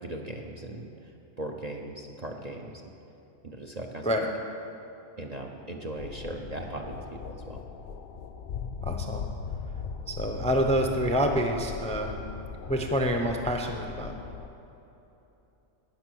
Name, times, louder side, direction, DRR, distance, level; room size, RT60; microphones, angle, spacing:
voice 1, 0.0-2.9 3.4-4.1 5.2-7.6, right 1 dB, 40° right, 2 dB, 0.7 m, -39 dB
sound 1, 5.9-14.5, left 6 dB, 55° left, 0.6 m, -38 dB
voice 2, 8.8-9.2 10.1-12.1 12.7-14.1, equal, 5° left, 3 dB, 0.6 m, -27 dB
18.0 x 6.2 x 6.3 m, 3.0 s
omnidirectional pair, 1.3 m